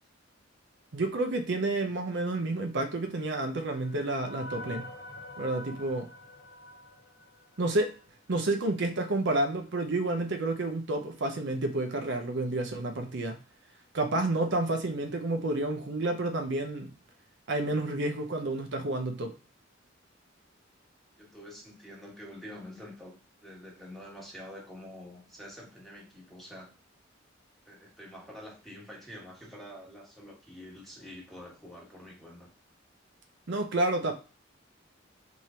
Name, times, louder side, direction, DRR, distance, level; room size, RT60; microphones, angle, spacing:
voice 1, 0.9-4.9 5.4-6.1 7.6-7.9 8.3-13.4 13.9-16.9 17.5-19.3 33.5-34.1, right 2 dB, 65° right, 0.7 m, -30 dB
sound 1, 2.9-8.1, left 1 dB, 75° left, 1.3 m, -47 dB
voice 2, 21.2-26.7 27.6-32.5, left 1 dB, ahead, 1.3 m, -47 dB
3.6 x 3.2 x 4.2 m
head